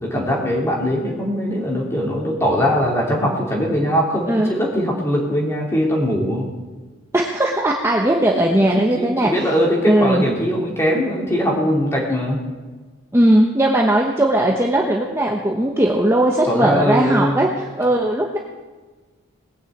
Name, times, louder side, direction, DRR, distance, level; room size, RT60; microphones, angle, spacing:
voice 1, 0.0-6.5 8.3-12.4 16.5-17.5, equal, 10° left, -2 dB, 2.8 m, -21 dB
voice 2, 7.1-9.5 9.9-10.2 13.1-18.4, right 1 dB, 10° right, -1 dB, 1.0 m, -18 dB
19.0 x 6.5 x 8.0 m, 1.3 s
head